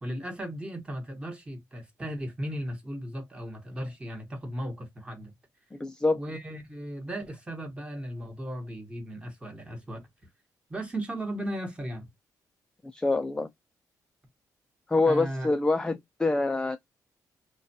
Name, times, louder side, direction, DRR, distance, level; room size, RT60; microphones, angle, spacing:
voice 1, 0.0-5.3 6.1-10.0 10.7-12.1 15.0-15.5, right 1 dB, 15° right, 1.1 m, -36 dB
voice 2, 5.7-6.2 12.9-13.5 14.9-16.8, left 3 dB, 10° left, 0.3 m, -26 dB
2.3 x 2.2 x 2.7 m
cardioid pair, 85°, 7 cm